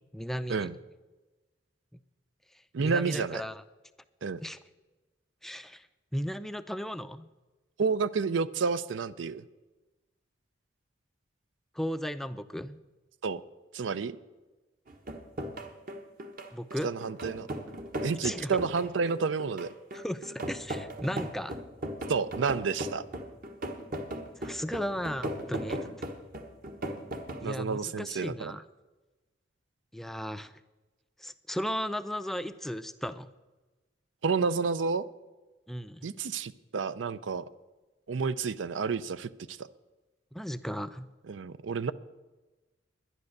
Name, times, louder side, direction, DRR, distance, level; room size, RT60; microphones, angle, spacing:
voice 1, 0.1-0.7 2.8-3.6 4.4-4.6 5.4-5.9 6.1-7.3 11.8-12.8 16.5-16.9 18.2-18.5 19.9-21.6 24.4-25.8 27.4-28.6 29.9-30.5 31.2-33.3 35.7-36.1 40.3-41.1, equal, ahead, 11 dB, 0.4 m, -35 dB
voice 2, 2.7-3.4 4.2-4.4 7.8-9.4 13.2-13.4 13.7-14.2 16.8-17.5 18.0-19.7 22.1-23.0 25.7-25.8 27.4-28.5 34.2-35.1 36.0-37.5 38.1-39.7 41.3-41.9, right 5 dB, 85° right, 16 dB, 0.5 m, -30 dB
sound 1, 14.9-27.5, right 1 dB, 50° right, 1.2 m, -37 dB
11.0 x 10.5 x 6.5 m, 1.2 s
head